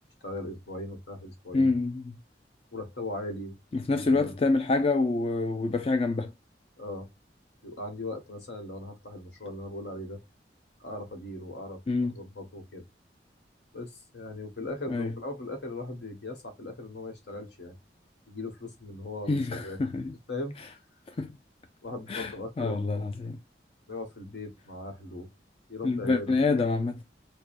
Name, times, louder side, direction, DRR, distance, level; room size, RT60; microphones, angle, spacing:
voice 1, 0.2-1.7 2.7-4.3 6.8-7.1 7.6-10.2 10.8-11.8 12.1-12.8 13.7-17.8 18.3-19.8 20.3-20.6 21.8-23.0 23.9-25.3 25.7-26.4, left 2 dB, 75° left, 1.2 m, -39 dB
voice 2, 1.5-2.2 3.7-6.3 11.9-12.1 14.9-15.1 19.3-20.1 21.2-21.3 22.1-23.4 25.8-27.0, left 3 dB, 35° left, 0.4 m, -27 dB
4.7 x 2.2 x 2.4 m
head